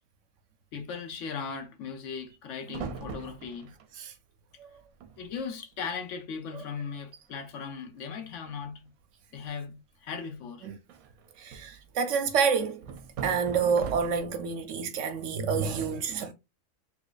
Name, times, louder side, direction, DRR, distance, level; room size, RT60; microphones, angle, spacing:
voice 1, 0.7-3.7 5.2-8.9 9.3-10.7, left 6 dB, 65° left, 1.0 m, -38 dB
sound 1, 2.7-3.9 4.7-4.8 5.0-5.4 5.7-5.9 6.4-6.5 6.9-7.3 8.3-8.9 10.9-11.8 12.8-14.5, right 6 dB, 90° right, 1.1 m, -41 dB
voice 2, 11.4-12.8 13.2-16.3, right 6 dB, 70° right, 0.9 m, -28 dB
4.4 x 2.7 x 2.4 m
omnidirectional pair, 1.4 m